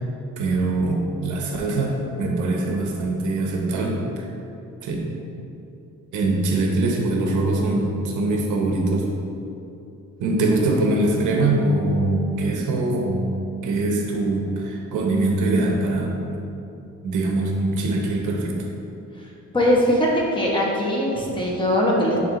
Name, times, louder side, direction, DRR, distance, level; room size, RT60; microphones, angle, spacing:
voice 1, 0.4-4.3 4.8-5.0 6.1-9.2 10.2-13.4 13.6-16.4 17.0-18.5, right 2 dB, 80° right, 0 dB, 1.0 m, -23 dB
voice 2, 19.5-22.2, equal, 15° left, -4 dB, 1.3 m, -20 dB
9.6 x 3.3 x 3.1 m, 2.8 s
cardioid pair, 105°, 30 cm